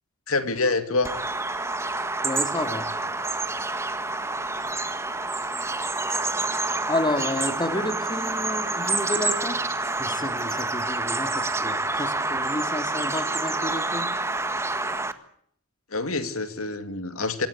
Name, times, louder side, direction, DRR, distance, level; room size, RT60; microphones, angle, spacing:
voice 1, 0.3-1.1 15.9-17.5, left 3 dB, 70° left, 9 dB, 2.6 m, -26 dB
Bird vocalization bird call bird song, 1.0-15.1, right 2 dB, 15° right, 1.6 m, -28 dB
voice 2, 2.2-2.9 6.9-9.6 10.0-14.2, left 1 dB, 20° left, 8 dB, 2.2 m, -30 dB
25.5 x 18.5 x 8.3 m, 0.66 s
head